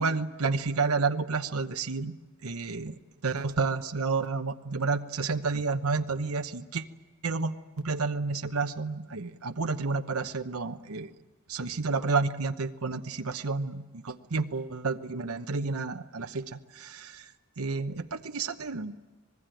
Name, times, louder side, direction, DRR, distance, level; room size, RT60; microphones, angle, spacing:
voice 1, 0.0-2.1 2.4-6.8 7.2-11.1 11.5-19.0, right 4 dB, 90° right, 6 dB, 1.0 m, -30 dB
25.5 x 20.5 x 9.2 m, 1.3 s
head